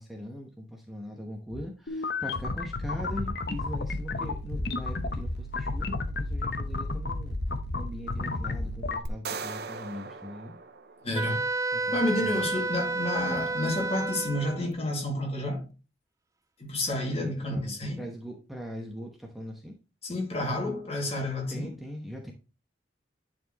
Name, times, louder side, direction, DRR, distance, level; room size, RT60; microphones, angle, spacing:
voice 1, 0.0-7.4 7.7-10.6 11.7-12.4 17.0-19.7 21.5-22.3, equal, ahead, 1.0 m, -41 dB
sound 1, 1.9-9.0, left 2 dB, 65° left, 0.9 m, -32 dB
sound 2, 9.1-11.4, right 4 dB, 65° right, 0.7 m, -39 dB
voice 2, 11.0-11.5 11.9-15.7 16.6-18.0 20.0-21.8, left 1 dB, 35° left, 2.3 m, -30 dB
Wind instrument woodwind instrument, 11.1-14.6, right 3 dB, 20° right, 0.4 m, -30 dB
10.0 x 4.4 x 3.0 m
head